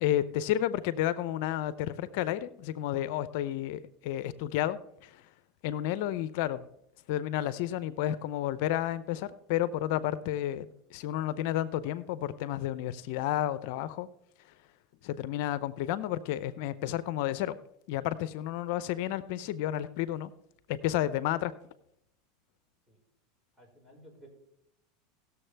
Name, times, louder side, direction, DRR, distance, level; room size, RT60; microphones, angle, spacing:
voice 1, 0.0-5.2 5.6-6.6 7.1-14.1 15.0-17.5 17.9-20.3 20.7-21.5, left 12 dB, 65° left, 15 dB, 0.5 m, -31 dB
voice 2, 23.6-24.3, equal, 15° right, -1 dB, 4.8 m, -55 dB
18.0 x 7.0 x 3.3 m, 0.75 s
supercardioid pair, 110°, 0 cm